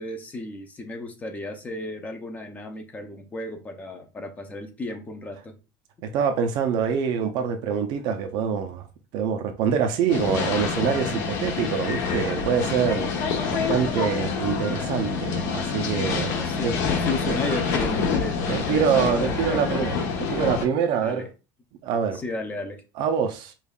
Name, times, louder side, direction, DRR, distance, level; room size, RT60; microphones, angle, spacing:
voice 1, 0.0-5.5 16.3-19.7 21.0-21.3 22.1-22.8, left 2 dB, 15° left, 0.5 m, -34 dB
voice 2, 6.0-8.9 9.1-13.1 13.5-16.3 16.6-16.7 17.3-17.4 18.5-21.2 21.8-22.2 23.0-23.5, right 7 dB, 45° right, 0.5 m, -25 dB
sound 1, 10.1-20.7, left 5 dB, 70° left, 0.9 m, -27 dB
5.2 x 2.3 x 2.3 m
cardioid pair, 170°, 10 cm